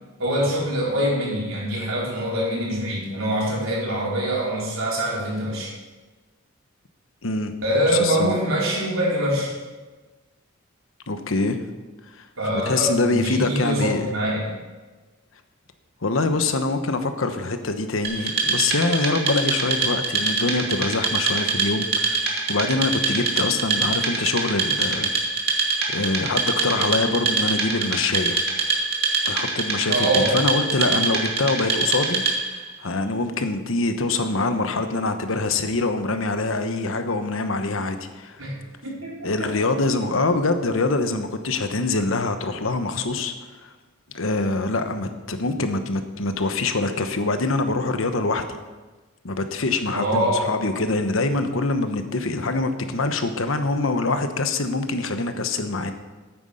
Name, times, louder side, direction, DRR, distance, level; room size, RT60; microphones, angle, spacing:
voice 1, 0.2-5.7 7.6-9.5 12.4-14.6 29.9-30.4 38.4-38.6 38.8-39.3 49.9-50.5, right 1 dB, 85° right, -4 dB, 4.3 m, -24 dB
voice 2, 7.2-7.5 7.9-8.3 11.1-11.6 12.1-12.3 12.7-14.1 16.0-25.1 25.5-28.4 29.2-32.2 32.8-38.4 39.2-43.3 43.6-43.7 44.1-48.5 49.2-55.9, left 3 dB, 75° left, 8 dB, 1.1 m, -24 dB
Wood, 18.0-32.6, right 4 dB, 55° right, 2.3 m, -24 dB
9.6 x 9.4 x 6.5 m, 1.3 s
head